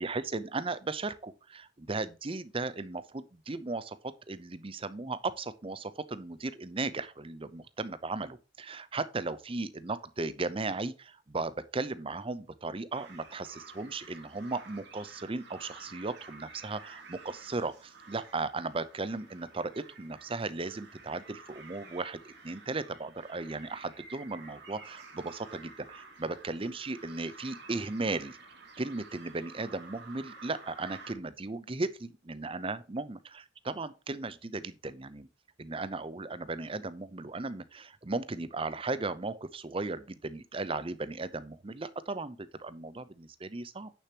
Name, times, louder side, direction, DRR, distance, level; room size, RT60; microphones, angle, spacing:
voice 1, 0.0-28.4 28.8-35.3 35.6-43.9, right 3 dB, 25° right, 0.6 m, -36 dB
sound 1, 12.9-31.1, right 4 dB, 55° right, 2.5 m, -51 dB
9.2 x 6.7 x 2.9 m
head